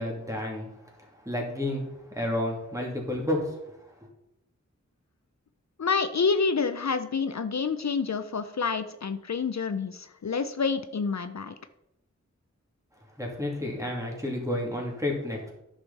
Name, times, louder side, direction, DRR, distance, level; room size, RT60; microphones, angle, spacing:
voice 1, 0.0-3.8 13.2-15.5, left 1 dB, 10° right, -1 dB, 2.6 m, -31 dB
voice 2, 5.8-11.5, left 5 dB, 65° left, 10 dB, 0.5 m, -28 dB
9.9 x 6.3 x 4.1 m, 0.82 s
wide cardioid pair, 40°, 29 cm